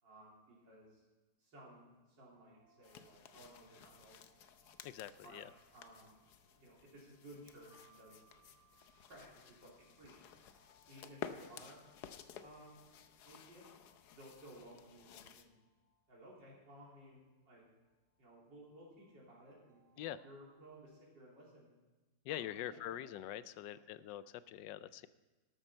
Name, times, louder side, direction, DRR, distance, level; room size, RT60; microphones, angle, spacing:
voice 1, 0.0-1.0 1.4-1.9 2.2-4.1 5.2-5.4 5.7-6.2 6.5-8.2 9.1-9.7 10.0-10.2 10.9-11.8 12.4-12.8 13.2-13.7 14.1-15.6 16.1-17.6 18.2-21.7 22.3-23.1 23.7-23.8, right 1 dB, 85° right, -5 dB, 3.9 m, -57 dB
sound 1, 2.5-20.8, right 2 dB, 30° right, 1.9 m, -74 dB
sound 2, 2.8-15.5, left 8 dB, 70° left, 1.2 m, -54 dB
voice 2, 4.8-5.5 20.0-20.2 22.2-25.1, left 12 dB, 90° left, 15 dB, 1.3 m, -44 dB
13.0 x 12.0 x 4.4 m, 1.2 s
omnidirectional pair, 1.9 m